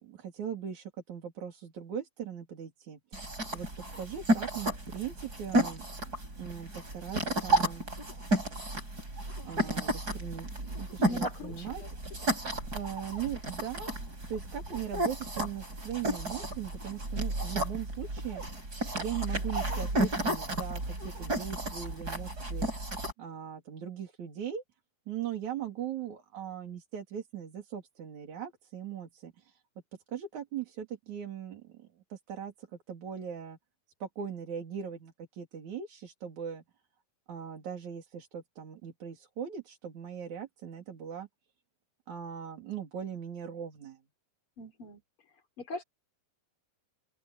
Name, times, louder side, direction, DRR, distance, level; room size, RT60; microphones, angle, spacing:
voice 1, 0.0-3.3 3.5-3.7 4.0-7.9 9.4-11.8 12.7-18.4 18.9-22.7 23.2-24.6 25.1-29.6 30.1-33.6 34.0-36.6 37.3-41.3 42.1-44.0, right 9 dB, 50° right, 4.1 m, -40 dB
sound 1, 3.1-23.1, right 1 dB, 20° right, 7.6 m, -32 dB
voice 2, 11.0-11.9 12.2-12.4 44.6-45.0 45.6-45.8, left 2 dB, 35° left, 4.3 m, -40 dB
open air
omnidirectional pair, 4.5 m